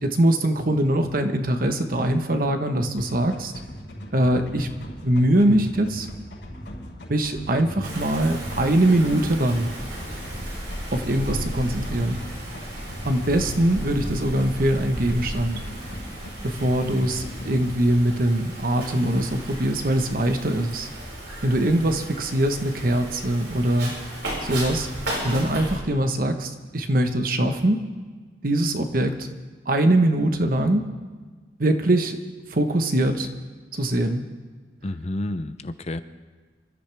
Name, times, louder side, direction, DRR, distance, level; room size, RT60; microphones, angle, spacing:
voice 1, 0.0-3.5 4.1-4.7 5.0-6.1 7.1-9.7 10.9-12.2 13.0-15.6 16.4-20.9 21.4-23.9 24.4-24.9 25.2-27.8 28.4-29.3 29.7-30.9 31.6-32.2 32.5-33.3 33.7-34.2, right 1 dB, 50° right, 6 dB, 1.2 m, -22 dB
sound 1, 3.0-17.7, equal, 85° left, 5.5 m, -39 dB
Wind, 7.8-25.8, right 1 dB, 80° right, 5.4 m, -35 dB
voice 2, 34.8-36.0, left 1 dB, 35° left, 11 dB, 0.6 m, -30 dB
26.0 x 13.5 x 3.5 m, 1.4 s
head